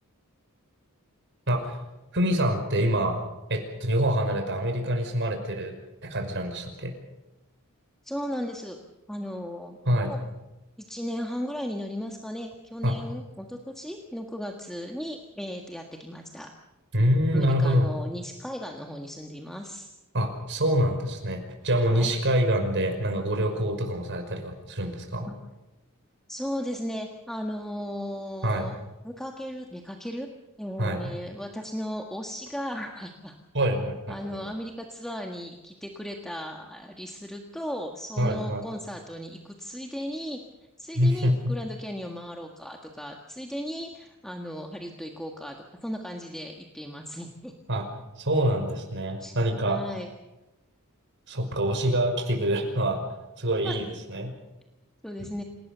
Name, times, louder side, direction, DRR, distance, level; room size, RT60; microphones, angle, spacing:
voice 1, 1.5-1.8 2.1-3.2 3.5-5.8 6.0-6.9 9.9-10.1 12.8-12.9 16.9-17.9 20.1-25.3 28.4-28.7 30.8-31.1 33.5-34.4 38.2-38.6 41.0-41.5 47.7-47.9 48.2-49.8 51.3-53.0 53.4-54.3 55.2-55.3, equal, 55° right, 4 dB, 5.7 m, -26 dB
voice 2, 8.0-8.8 9.1-10.2 10.8-16.5 17.3-19.9 21.8-22.1 25.3-25.4 26.3-28.7 29.0-30.3 30.6-33.3 34.1-40.4 40.8-47.5 49.2-49.3 49.6-50.1 53.6-53.8 55.0-55.4, equal, ahead, 2 dB, 1.6 m, -36 dB
28.0 x 18.5 x 6.9 m, 1.0 s
head